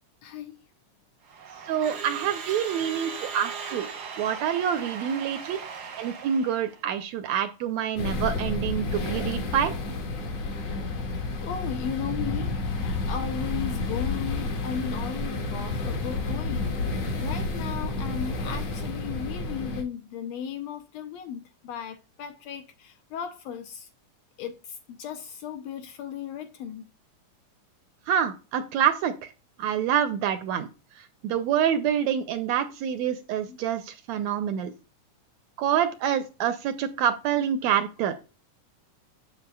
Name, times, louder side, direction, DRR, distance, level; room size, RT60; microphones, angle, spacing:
voice 1, 0.2-0.6 11.4-12.6 13.1-23.9 24.4-26.9 31.3-31.5 33.5-33.6, left 8 dB, 75° left, 1.6 m, -36 dB
Crowd / Alarm, 1.3-6.8, right 6 dB, 55° right, 1.1 m, -38 dB
voice 2, 1.7-3.9 4.2-5.6 6.0-9.7 28.1-29.3 29.6-30.7 31.0-34.7 35.6-38.1, right 9 dB, 75° right, 1.7 m, -27 dB
sound 1, 8.0-19.8, left 2 dB, 60° left, 2.4 m, -30 dB
7.9 x 7.3 x 2.3 m
omnidirectional pair, 3.6 m